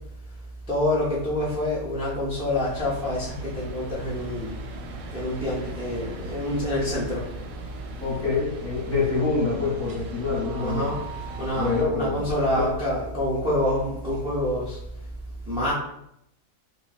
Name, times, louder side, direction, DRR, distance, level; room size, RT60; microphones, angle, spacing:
voice 1, 0.7-4.6 5.1-7.2 10.6-11.0 11.4-14.8 15.5-15.7, left 1 dB, 10° right, -8 dB, 0.4 m, -27 dB
sound 1, 2.5-11.9, right 2 dB, 85° right, 1.1 m, -38 dB
voice 2, 8.0-10.9 11.5-12.2 12.5-12.7, left 4 dB, 30° left, -6 dB, 0.9 m, -26 dB
2.6 x 2.3 x 4.0 m, 0.79 s
omnidirectional pair, 1.7 m